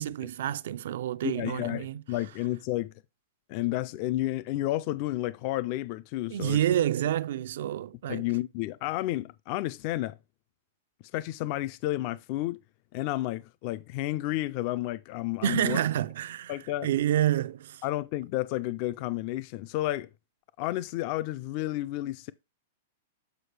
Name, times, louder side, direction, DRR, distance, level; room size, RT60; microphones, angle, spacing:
voice 1, 0.0-2.0 6.3-8.3 15.4-17.8, right 11 dB, 65° right, 0.4 m, -28 dB
voice 2, 1.2-2.9 3.5-6.6 8.1-10.2 11.1-12.6 12.9-15.8 16.5-16.9 17.8-20.1 20.6-22.3, left 16 dB, 40° left, 0.3 m, -31 dB
8.1 x 4.8 x 3.3 m
supercardioid pair, 160°, 0 cm